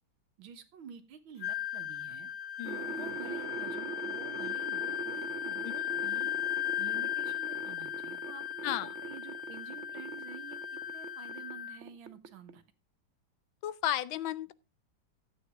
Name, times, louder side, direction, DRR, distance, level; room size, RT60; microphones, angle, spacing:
voice 1, 0.4-2.3 3.0-6.4 6.8-10.6 10.9-12.6, right 8 dB, 85° right, 2.0 m, -49 dB
Wind instrument woodwind instrument, 1.4-11.8, left 12 dB, 55° left, 0.9 m, -37 dB
voice 2, 2.6-3.2 5.6-5.7 8.6-8.9 13.6-14.5, left 13 dB, 80° left, 1.5 m, -34 dB
sound 1, 2.6-11.6 11.8-12.5, right 5 dB, 50° right, 0.9 m, -43 dB
13.0 x 8.5 x 3.5 m
omnidirectional pair, 2.1 m